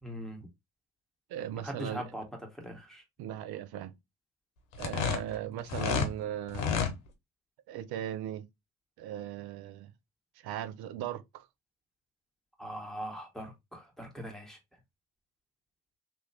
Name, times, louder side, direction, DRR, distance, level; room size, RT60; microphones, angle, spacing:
voice 1, 0.0-0.5 1.6-2.2 2.5-3.0 12.6-14.6, equal, ahead, 1.6 m, -41 dB
voice 2, 1.3-2.0 3.2-3.9 4.8-7.0 7.7-8.4 9.0-9.9 10.4-11.5, right 11 dB, 70° right, 0.6 m, -38 dB
sound 1, 4.7-6.1 6.5-6.9, left 7 dB, 85° left, 0.8 m, -30 dB
3.0 x 3.0 x 3.0 m
hypercardioid pair, 55°, 39 cm